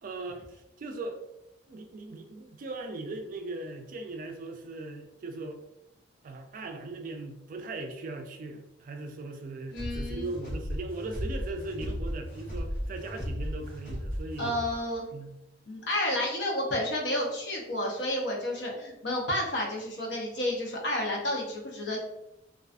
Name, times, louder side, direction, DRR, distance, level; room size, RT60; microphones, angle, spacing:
voice 1, 0.0-1.2 1.7-5.6 6.2-14.6 15.1-15.3, right 2 dB, 50° right, 5 dB, 0.3 m, -39 dB
voice 2, 9.7-10.3 14.4-15.1 15.7-22.0, left 1 dB, 70° left, -1 dB, 0.6 m, -31 dB
sound 1, 9.7-14.8, equal, 50° left, 1.2 m, -35 dB
2.4 x 2.3 x 2.4 m, 0.85 s
head